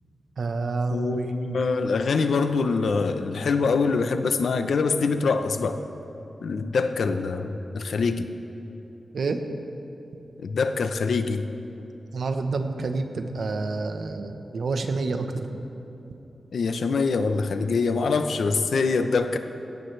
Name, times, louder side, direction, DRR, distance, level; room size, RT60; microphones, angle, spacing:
voice 1, 0.4-1.6 9.1-9.4 12.1-15.6, right 3 dB, 75° right, 6 dB, 1.1 m, -28 dB
voice 2, 0.9-5.8 6.4-8.3 10.4-11.5 16.5-19.4, left 4 dB, 85° left, 8 dB, 0.8 m, -24 dB
20.0 x 17.0 x 3.4 m, 3.0 s
wide cardioid pair, 110°, 0 cm